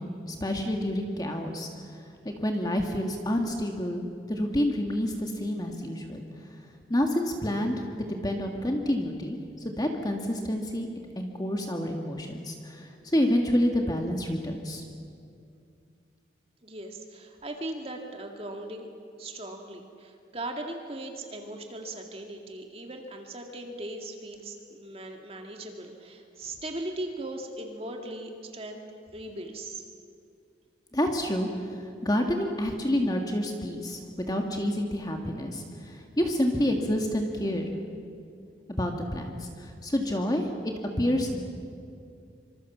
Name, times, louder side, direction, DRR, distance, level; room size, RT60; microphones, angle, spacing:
voice 1, 0.0-4.0 4.3-6.3 6.9-10.9 11.2-14.8 30.9-37.7 38.7-41.4, left 1 dB, 20° left, 3 dB, 1.8 m, -29 dB
voice 2, 16.6-18.9 19.2-28.8 29.1-29.8, right 1 dB, 30° right, 2 dB, 2.1 m, -39 dB
25.5 x 25.0 x 7.3 m, 2.4 s
head